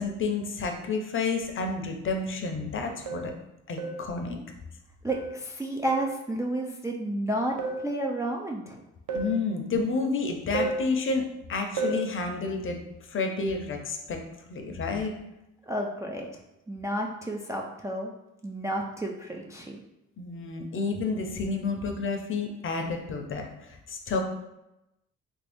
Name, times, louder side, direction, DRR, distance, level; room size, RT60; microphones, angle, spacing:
voice 1, 0.0-3.3 3.7-4.4 9.1-12.8 13.1-14.2 14.5-15.1 20.2-24.2, left 4 dB, 45° left, 4 dB, 0.6 m, -30 dB
sound 1, 3.1-3.4 3.8-4.1 5.1-5.4 5.9-6.2 7.6-7.9 9.1-9.4 10.5-10.9 11.8-12.1, right 3 dB, 75° right, 0.6 m, -31 dB
voice 2, 5.0-8.8 15.6-18.1 18.4-19.8, right 1 dB, 10° right, -1 dB, 0.3 m, -31 dB
3.1 x 2.6 x 3.4 m, 0.91 s
cardioid pair, 90°, 30 cm